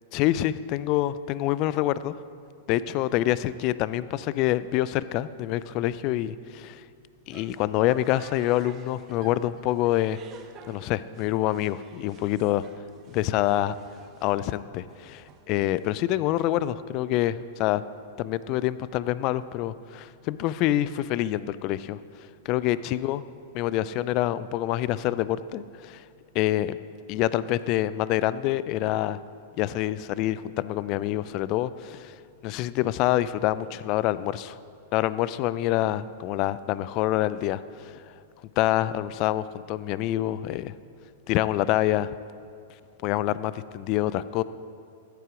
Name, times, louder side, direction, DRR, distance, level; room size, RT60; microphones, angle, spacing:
voice 1, 0.1-2.1 2.7-6.8 7.3-10.2 10.7-12.7 13.1-13.7 14.2-17.8 18.2-22.0 22.5-23.2 23.5-26.0 26.3-26.8 27.1-29.2 29.6-34.6 34.9-38.0 38.6-40.7 41.3-42.1 43.0-44.4, left 14 dB, 45° left, 16 dB, 0.4 m, -26 dB
sound 1, 7.1-16.2, right 7 dB, 35° right, 0.9 m, -52 dB
14.0 x 8.1 x 4.9 m, 2.4 s
hypercardioid pair, 110°, 0 cm